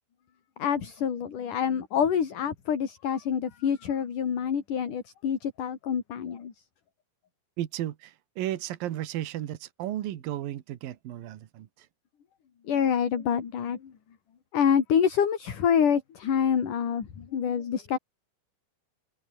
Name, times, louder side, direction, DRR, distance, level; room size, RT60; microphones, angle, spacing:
voice 1, 0.6-6.5 12.7-13.9 14.5-18.0, left 8 dB, 60° left, 4.4 m, -26 dB
voice 2, 7.6-11.9, right 13 dB, 75° right, 3.2 m, -34 dB
omnidirectional pair, 4.2 m